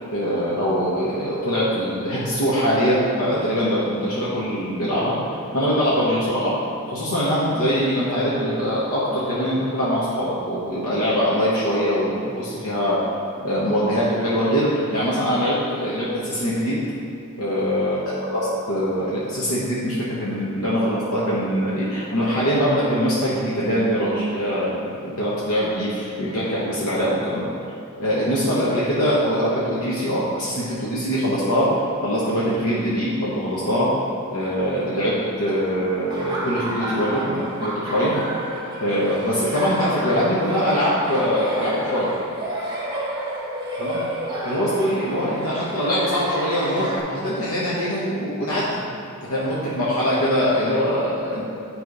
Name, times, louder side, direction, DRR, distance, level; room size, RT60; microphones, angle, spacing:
voice 1, 0.1-5.2 5.5-6.5 6.9-13.0 13.4-16.8 17.4-27.5 28.0-33.9 34.3-38.1 38.8-42.1 43.8-44.0 44.4-48.8 49.3-51.5, equal, 70° left, -8 dB, 1.2 m, -23 dB
Laughter, 36.1-47.0, right 1 dB, 20° right, 1.2 m, -30 dB
9.7 x 3.3 x 5.4 m, 2.6 s
head